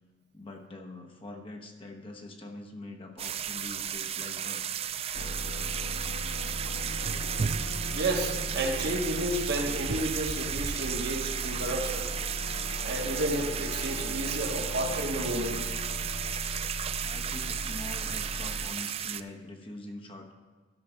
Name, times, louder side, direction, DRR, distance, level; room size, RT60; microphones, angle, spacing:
voice 1, 0.3-4.7 17.0-20.3, left 2 dB, 30° left, 2 dB, 1.0 m, -44 dB
sound 1, 3.2-19.2, right 8 dB, 35° right, 0.3 m, -34 dB
sound 2, 5.1-18.7, equal, 85° left, 0.9 m, -37 dB
voice 2, 7.6-12.1 12.8-15.6 17.1-17.2, right 1 dB, 65° right, 2 dB, 1.4 m, -32 dB
12.5 x 5.6 x 5.7 m, 1.4 s
head